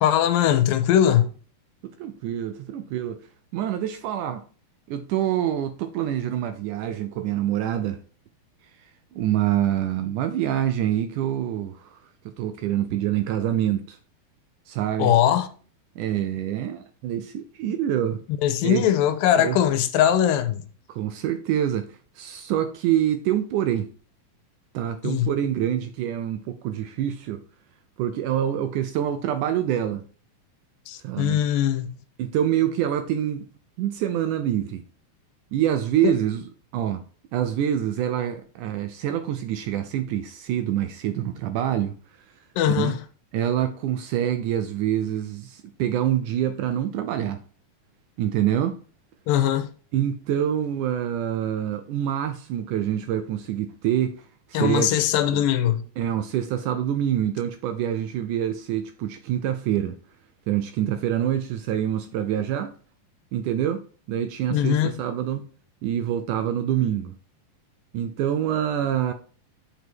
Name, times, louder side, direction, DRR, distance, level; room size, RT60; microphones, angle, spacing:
voice 1, 0.0-1.3 15.0-15.5 18.4-20.6 25.0-25.3 30.9-31.9 36.0-36.1 42.6-43.0 49.3-49.7 54.5-55.8 64.5-65.0, left 10 dB, 85° left, 2.4 m, -21 dB
voice 2, 1.8-3.2 3.5-4.4 4.9-8.0 9.1-14.0 14.7-15.1 16.0-18.2 18.6-18.8 19.4-19.6 20.9-23.9 24.7-27.4 28.0-30.1 31.0-31.4 32.2-33.5 33.8-34.8 35.5-36.4 36.7-37.0 37.3-42.0 42.8-43.0 43.3-47.4 48.2-48.8 49.9-55.0 55.3-55.4 56.0-60.0 60.5-62.7 63.3-65.5 65.8-67.2 67.9-69.1, right 11 dB, 80° right, 1.9 m, -26 dB
7.9 x 5.1 x 4.5 m
omnidirectional pair, 4.1 m